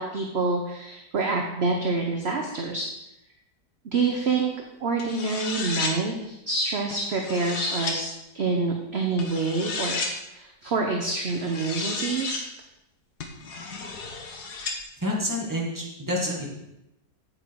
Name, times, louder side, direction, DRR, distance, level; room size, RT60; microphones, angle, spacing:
voice 1, 0.0-2.9 3.9-4.5 4.8-10.0 10.3-12.4, right 3 dB, 45° right, 2 dB, 1.0 m, -27 dB
sound 1, 5.0-6.0 6.9-8.0 9.2-10.1 11.3-12.4 13.2-14.8, left 4 dB, 65° left, 1.8 m, -32 dB
voice 2, 15.0-16.5, left 1 dB, 10° right, -3 dB, 2.1 m, -28 dB
9.2 x 8.3 x 4.8 m, 0.87 s
omnidirectional pair, 1.9 m